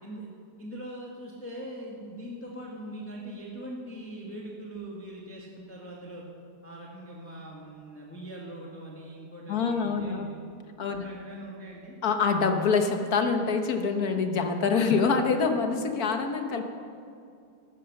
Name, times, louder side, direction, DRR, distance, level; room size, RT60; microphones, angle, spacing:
voice 1, 0.6-6.2 6.6-10.5 10.9-12.0, right 1 dB, 10° left, -4 dB, 1.4 m, -41 dB
voice 2, 9.5-10.3 10.8-11.1 12.0-16.6, left 5 dB, 65° left, 6 dB, 1.5 m, -25 dB
14.5 x 11.0 x 6.5 m, 2.4 s
omnidirectional pair, 1.8 m